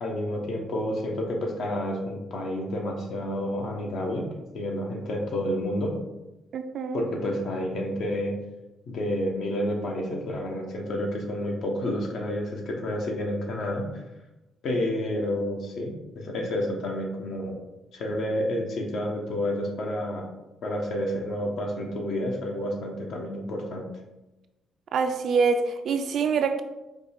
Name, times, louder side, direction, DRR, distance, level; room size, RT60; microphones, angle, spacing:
voice 1, 0.0-4.3 4.5-5.9 6.9-8.3 8.9-13.9 14.6-17.6 17.9-20.2 20.6-23.9, left 1 dB, 70° left, 1 dB, 1.0 m, -29 dB
voice 2, 6.5-7.0 24.9-26.6, right 5 dB, 65° right, 7 dB, 0.4 m, -25 dB
5.0 x 2.4 x 4.3 m, 1.0 s
cardioid pair, 90°, 0 cm